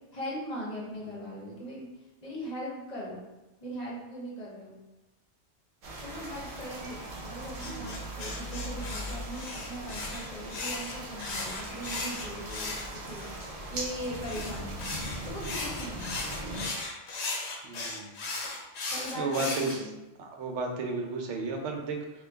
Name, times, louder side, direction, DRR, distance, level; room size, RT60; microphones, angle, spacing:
voice 1, 0.1-1.9 2.2-3.2 3.6-4.7 6.0-14.8 15.2-16.3 18.8-20.0, equal, 40° left, -4 dB, 0.8 m, -40 dB
sound 1, 5.8-16.7, right 1 dB, 50° right, 0.4 m, -40 dB
sound 2, 7.6-13.4 14.2-19.8, left 3 dB, 70° left, 0.9 m, -37 dB
voice 2, 7.6-8.0 14.3-14.4 17.6-18.2 19.1-19.8 20.2-22.2, right 3 dB, 75° right, 3 dB, 0.9 m, -33 dB
3.0 x 2.2 x 3.4 m, 1.0 s
omnidirectional pair, 1.2 m